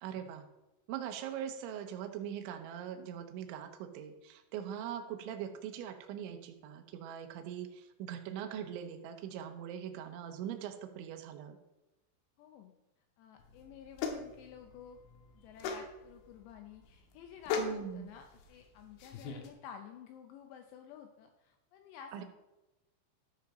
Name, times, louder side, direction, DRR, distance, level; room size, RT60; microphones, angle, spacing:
voice 1, 0.0-0.5 0.9-11.6 17.6-18.1 22.1-22.2, right 9 dB, 75° right, 6 dB, 3.1 m, -41 dB
voice 2, 12.4-12.7 13.2-15.0 15.4-22.2, left 8 dB, 90° left, 4 dB, 2.4 m, -52 dB
sound 1, 13.4-19.5, left 5 dB, 75° left, 3.2 m, -40 dB
13.5 x 5.2 x 5.1 m, 0.99 s
omnidirectional pair, 5.8 m